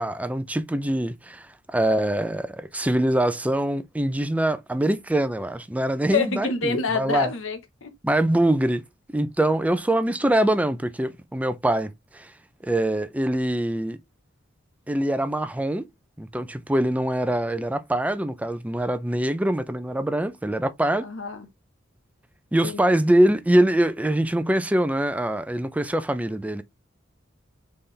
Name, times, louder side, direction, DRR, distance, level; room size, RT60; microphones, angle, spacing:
voice 1, 0.0-7.3 8.0-8.8 9.1-12.3 12.6-14.0 14.9-15.8 16.2-21.1 22.5-26.6, right 1 dB, 5° right, 0.4 m, -24 dB
voice 2, 6.1-7.9 21.0-21.5 22.6-22.8, left 4 dB, 85° left, 1.1 m, -27 dB
4.1 x 3.3 x 3.6 m
head